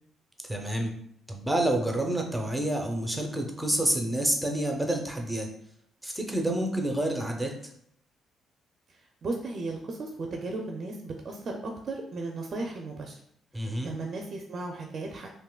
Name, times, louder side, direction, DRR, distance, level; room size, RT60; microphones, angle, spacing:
voice 1, 0.5-1.0 1.3-5.5 6.0-7.5 13.5-13.9, right 1 dB, 5° right, 1 dB, 0.6 m, -28 dB
voice 2, 9.2-13.2 13.5-15.3, right 3 dB, 50° right, 2 dB, 0.4 m, -35 dB
3.6 x 2.5 x 2.3 m, 0.70 s
cardioid pair, 90°, 0 cm